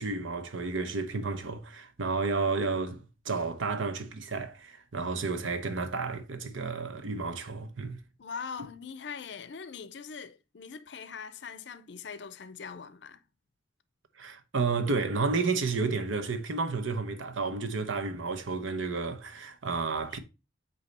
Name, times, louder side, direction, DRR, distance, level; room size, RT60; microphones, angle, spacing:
voice 1, 0.0-8.0 14.2-20.2, right 4 dB, 85° right, 0.9 m, -31 dB
voice 2, 8.2-13.2 19.9-20.2, left 6 dB, 65° left, 0.5 m, -42 dB
8.3 x 2.8 x 4.1 m
head